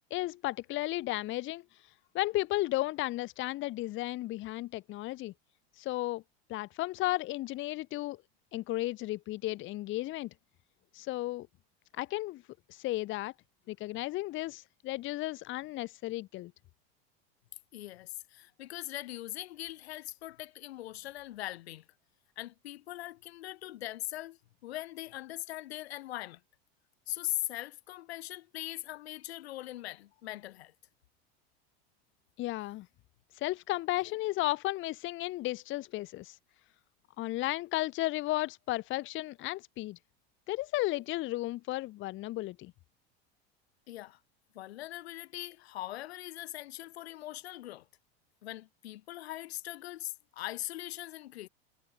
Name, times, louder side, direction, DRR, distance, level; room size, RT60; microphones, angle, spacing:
voice 1, 0.1-1.6 2.1-5.3 5.8-6.2 6.5-8.2 8.5-10.3 10.9-11.5 11.9-12.4 12.7-13.3 13.7-16.5 32.4-32.9 33.4-36.4 37.2-40.0 40.5-42.7, left 17 dB, 40° left, 0.8 m, -34 dB
voice 2, 17.7-21.9 22.4-26.4 27.1-30.7 43.9-44.2 44.5-47.9 48.4-51.5, left 15 dB, 90° left, 1.7 m, -41 dB
supercardioid pair, 115°, 31 cm